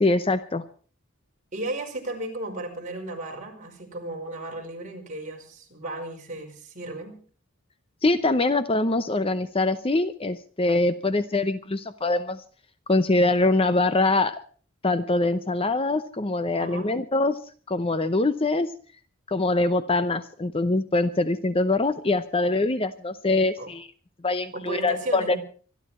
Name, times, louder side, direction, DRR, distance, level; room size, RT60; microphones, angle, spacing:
voice 1, 0.0-0.6 8.0-12.4 12.9-14.4 14.8-17.4 17.7-18.7 19.3-23.9 24.2-25.4, left 2 dB, 25° left, 12 dB, 0.7 m, -23 dB
voice 2, 1.5-7.2 16.6-16.9 23.6-23.7 24.5-25.4, right 2 dB, 35° right, 1 dB, 5.0 m, -34 dB
25.0 x 11.5 x 4.4 m, 0.42 s
head